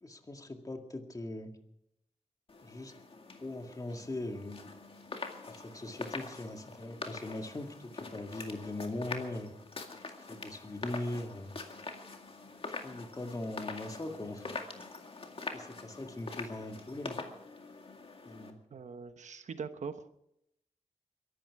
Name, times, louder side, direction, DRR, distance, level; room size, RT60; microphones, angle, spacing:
voice 1, 0.0-1.5 2.6-2.9 3.4-4.6 5.5-9.5 10.2-11.6 12.8-14.4 15.5-17.2 18.3-18.6, left 1 dB, 30° left, 4 dB, 2.1 m, -40 dB
sound 1, 2.5-18.5, left 3 dB, 50° left, 2.1 m, -44 dB
voice 2, 18.7-20.1, right 6 dB, 90° right, 10 dB, 1.1 m, -42 dB
22.5 x 12.0 x 4.8 m, 0.78 s
wide cardioid pair, 105°, 12 cm